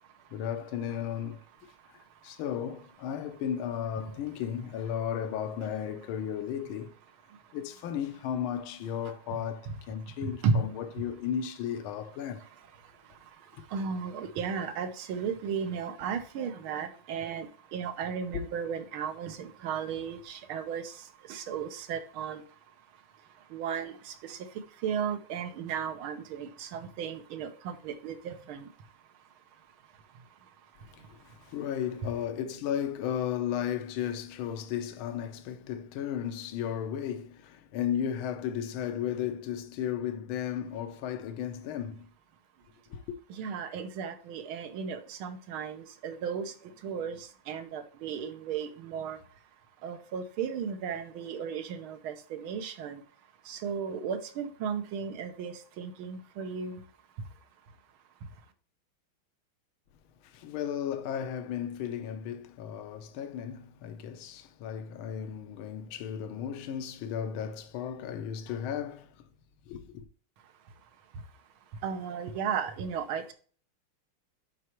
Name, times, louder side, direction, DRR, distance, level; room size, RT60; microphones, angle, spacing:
voice 1, 0.3-1.4 1.9-6.9 7.5-12.5 13.5-13.6 18.3-18.4 30.9-42.1 42.9-43.2 60.2-69.2 69.7-70.0, left 9 dB, 70° left, 1.6 m, -35 dB
voice 2, 13.7-20.9 21.3-22.4 23.5-24.4 24.8-28.6 43.4-46.5 46.8-49.2 49.8-53.0 53.5-56.8 71.8-73.3, right 6 dB, 70° right, 1.7 m, -34 dB
11.0 x 4.6 x 3.0 m
omnidirectional pair, 2.4 m